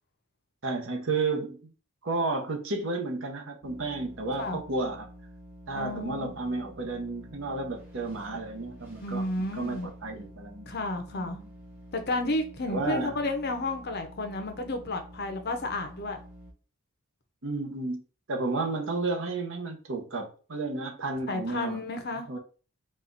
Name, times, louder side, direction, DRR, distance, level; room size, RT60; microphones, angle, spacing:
voice 1, 0.6-1.7 2.0-5.1 5.7-10.7 11.1-11.5 12.7-13.1 17.4-18.0 18.3-21.8 22.1-22.4, right 3 dB, 60° right, 1.0 m, -32 dB
sound 1, 3.6-16.5, equal, 10° right, 0.9 m, -49 dB
voice 2, 5.7-6.3 9.0-9.9 10.7-11.4 11.9-16.2 21.3-22.3, left 2 dB, 50° left, 0.6 m, -32 dB
4.2 x 2.4 x 3.9 m
head